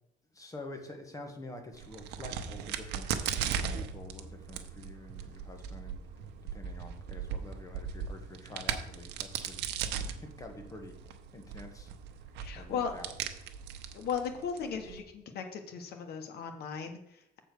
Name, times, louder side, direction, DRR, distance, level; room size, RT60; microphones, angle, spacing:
voice 1, 0.3-3.1 3.4-6.3 6.5-11.9 12.5-13.1, left 2 dB, 20° left, 4 dB, 1.8 m, -47 dB
Crack, 1.7-15.0, right 8 dB, 85° right, 0.9 m, -38 dB
voice 2, 12.4-12.9 13.9-17.4, left 6 dB, 70° left, 6 dB, 1.4 m, -37 dB
7.7 x 4.5 x 6.7 m, 0.84 s
cardioid pair, 110°, 17 cm